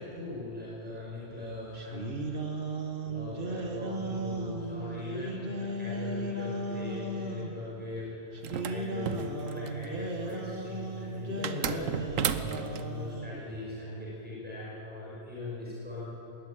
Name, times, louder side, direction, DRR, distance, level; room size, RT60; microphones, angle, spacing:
voice 1, 0.0-16.1, left 2 dB, 5° right, -6 dB, 6.0 m, -40 dB
sound 1, 1.7-7.5 8.3-13.4, right 2 dB, 45° right, 1.8 m, -36 dB
sound 2, 8.4-9.9 11.4-12.9, right 8 dB, 80° right, 1.2 m, -33 dB
21.5 x 17.5 x 9.0 m, 3.0 s
omnidirectional pair, 1.3 m